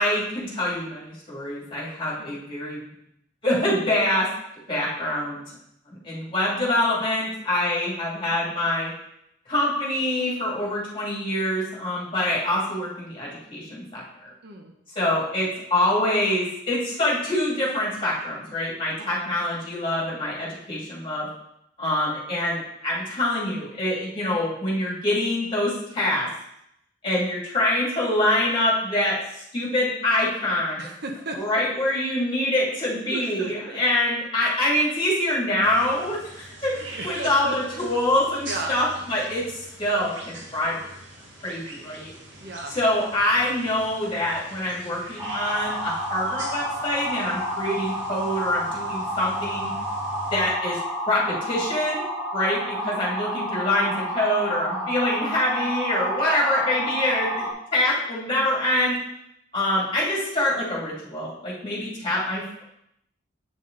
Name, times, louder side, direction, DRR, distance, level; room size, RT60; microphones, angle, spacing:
voice 1, 0.0-2.8 3.4-4.3 4.7-5.4 5.9-8.9 9.5-14.0 14.9-21.3 21.8-26.3 27.0-30.9 31.3-36.7 37.0-40.8 41.4-42.1 42.7-49.7 50.3-50.8 51.1-52.0 52.3-59.0 59.5-62.6, left 1 dB, 25° left, -5 dB, 2.5 m, -25 dB
voice 2, 30.8-31.6 33.1-33.8 36.9-37.8 38.5-38.8 42.4-42.8 53.8-54.2 54.7-55.0, right 2 dB, 60° right, 3 dB, 1.0 m, -36 dB
sound 1, 35.6-50.5, right 1 dB, 75° right, 1.8 m, -42 dB
sound 2, 45.2-57.5, equal, 10° right, 2.9 m, -30 dB
8.5 x 5.3 x 3.9 m, 0.80 s
head